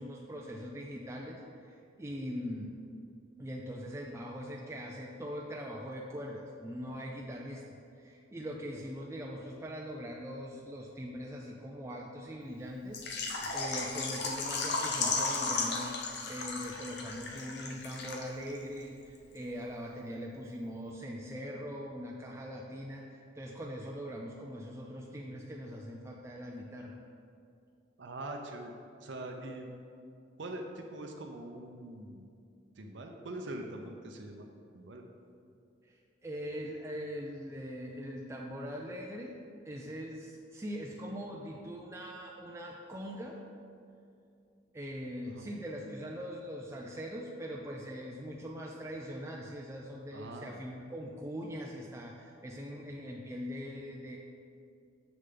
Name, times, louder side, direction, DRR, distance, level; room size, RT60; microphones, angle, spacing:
voice 1, 0.0-2.7 3.4-7.6 8.0-16.0 16.3-27.0 35.8-39.4 39.6-43.4 44.7-54.2, equal, 15° right, -1 dB, 0.4 m, -41 dB
Water / Liquid, 12.9-18.6 18.8-18.9 19.4-19.5, left 3 dB, 60° left, 0.7 m, -35 dB
voice 2, 28.0-28.7 29.0-29.8 30.4-32.3 32.8-34.5 34.7-35.0 45.3-45.5 50.1-50.6, right 1 dB, 70° right, 3 dB, 0.6 m, -43 dB
7.1 x 6.4 x 3.9 m, 2.5 s
head